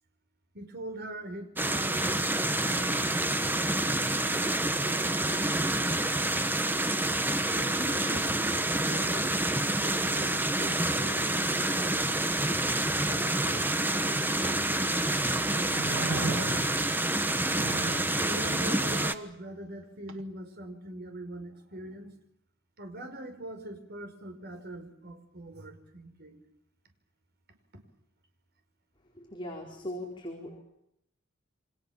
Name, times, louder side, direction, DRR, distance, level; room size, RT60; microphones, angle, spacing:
voice 1, 0.5-3.9 4.8-6.3 7.5-9.3 9.8-12.1 13.0-15.8 16.3-17.0 17.3-17.4 18.2-22.1 22.8-26.4, right 1 dB, 55° right, 6 dB, 5.4 m, -42 dB
sound 1, 1.6-19.1, right 1 dB, 10° right, 1.3 m, -28 dB
sound 2, 15.7-16.9 17.5-18.2 20.1-20.2, right 3 dB, 70° right, 1.9 m, -35 dB
voice 2, 29.1-30.6, left 1 dB, 25° left, 0 dB, 4.5 m, -39 dB
29.0 x 25.5 x 7.3 m, 0.78 s
head